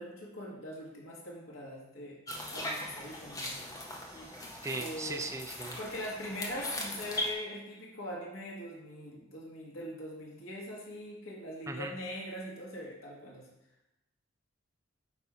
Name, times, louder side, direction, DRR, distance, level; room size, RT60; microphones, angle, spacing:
voice 1, 0.0-2.2 2.5-3.6 4.8-5.2 5.8-13.5, left 1 dB, 75° left, -4 dB, 1.7 m, -42 dB
sound 1, 2.3-7.3, left 1 dB, 15° left, 0.6 m, -39 dB
voice 2, 4.6-5.8 11.7-11.9, right 3 dB, 15° right, 6 dB, 0.3 m, -38 dB
8.1 x 2.7 x 4.8 m, 0.93 s
head